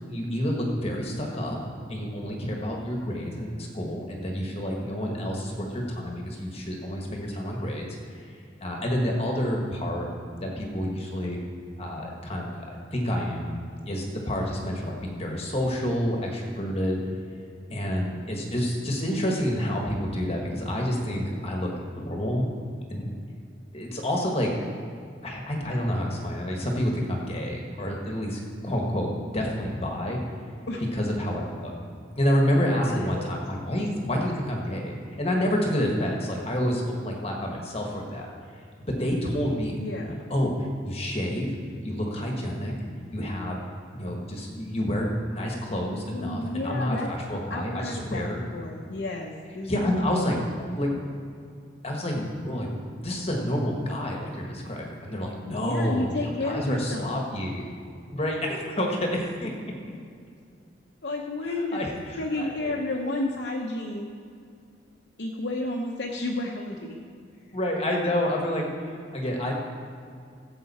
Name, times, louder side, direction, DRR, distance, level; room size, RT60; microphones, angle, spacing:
voice 1, 0.1-1.6 1.9-7.9 8.1-8.2 8.6-10.1 10.4-11.4 11.8-13.5 13.9-17.0 17.7-22.5 22.9-23.1 23.7-24.5 25.2-30.2 30.9-31.7 32.1-38.3 38.9-39.8 40.3-41.5 41.8-42.7 43.1-43.6 43.9-48.4 49.6-50.4 50.7-51.1 51.8-57.7 58.1-59.7 61.5-62.8 67.5-69.5, equal, 30° left, 0 dB, 1.4 m, -28 dB
voice 2, 32.6-33.3 39.7-40.2 46.1-47.1 47.5-50.3 55.4-57.2 61.0-61.8 62.2-64.1 65.2-67.0, left 2 dB, 60° left, -1 dB, 0.9 m, -32 dB
16.0 x 7.7 x 4.2 m, 2.4 s
head